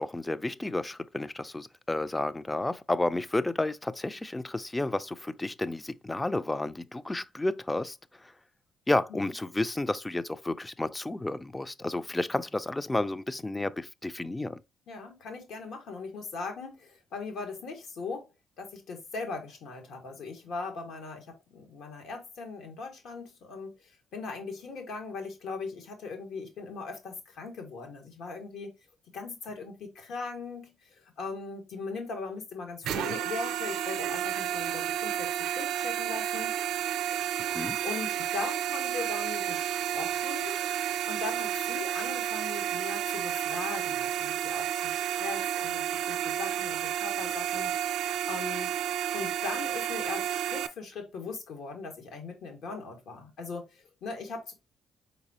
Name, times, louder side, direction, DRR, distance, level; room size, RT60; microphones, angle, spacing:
voice 1, 0.0-8.0 8.2-8.3 8.9-14.6 37.5-37.8, left 2 dB, 15° left, 0.3 m, -31 dB
voice 2, 14.9-18.3 18.6-28.7 29.1-36.5 37.8-40.6 41.1-48.7 49.1-54.5, left 4 dB, 75° left, 1.6 m, -39 dB
sound 1, 32.8-50.7, right 11 dB, 85° right, 0.4 m, -31 dB
4.6 x 4.0 x 2.8 m
cardioid pair, 90°, 0 cm